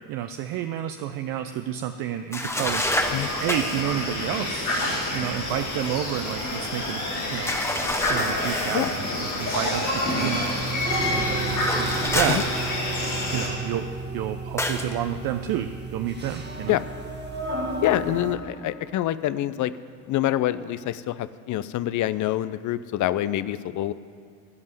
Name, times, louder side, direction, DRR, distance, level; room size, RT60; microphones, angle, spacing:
voice 1, 0.1-2.8 3.4-7.0 7.3-7.6 8.0-10.6 11.1-12.4 13.3-13.9 14.1-16.7, right 11 dB, 50° right, 8 dB, 0.7 m, -30 dB
sound 1, 2.3-3.9 7.5-9.0 11.4-13.1 14.6-14.9, left 1 dB, 5° left, 1.2 m, -28 dB
sound 2, 2.9-13.5, left 1 dB, 85° left, 4.1 m, -28 dB
sound 3, 10.3-18.4, right 3 dB, 25° right, 1.6 m, -33 dB
voice 2, 12.0-12.4 16.7-16.9 17.8-19.7 20.1-23.9, left 13 dB, 40° left, 15 dB, 0.6 m, -26 dB
16.0 x 5.4 x 9.6 m, 2.1 s
hypercardioid pair, 60°, 44 cm